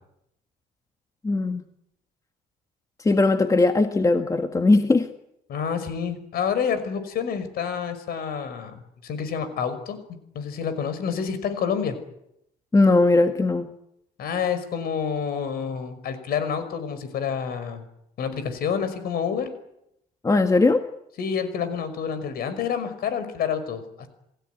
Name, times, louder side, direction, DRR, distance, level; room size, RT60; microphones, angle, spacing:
voice 1, 1.2-1.6 3.0-5.1 12.7-13.7 20.2-20.8, left 3 dB, 20° left, 7 dB, 1.8 m, -19 dB
voice 2, 5.5-10.0 10.3-12.0 14.2-17.8 18.2-19.5 21.2-24.1, left 7 dB, 65° left, 12 dB, 5.6 m, -28 dB
28.5 x 17.0 x 9.4 m, 0.79 s
cardioid pair, 110°, 17 cm